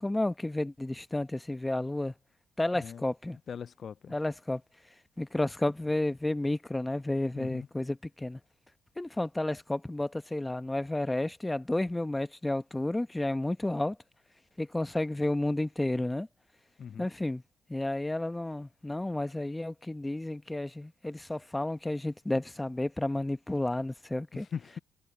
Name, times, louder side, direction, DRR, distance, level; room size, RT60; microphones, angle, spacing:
voice 1, 0.0-2.1 2.6-3.4 4.1-4.6 5.2-8.4 9.0-14.0 14.6-16.3 17.0-17.4 17.7-24.5, left 1 dB, 15° left, 0.9 m, -31 dB
voice 2, 3.5-4.1 7.4-7.7 16.8-17.1 24.3-24.8, left 7 dB, 55° left, 0.4 m, -40 dB
supercardioid pair, 65°, 0 cm